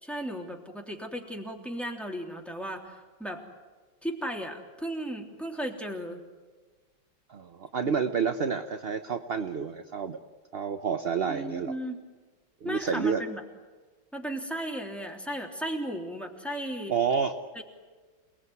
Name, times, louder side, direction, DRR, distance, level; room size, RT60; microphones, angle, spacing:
voice 1, 0.0-3.4 4.0-6.2 11.3-12.1 12.6-13.4 14.1-17.0 17.5-17.6, equal, ahead, 2 dB, 3.3 m, -35 dB
voice 2, 7.3-10.2 10.5-11.7 12.6-13.2 16.9-17.4, right 6 dB, 45° right, 8 dB, 0.8 m, -29 dB
28.5 x 20.0 x 9.5 m, 1.4 s
omnidirectional pair, 2.1 m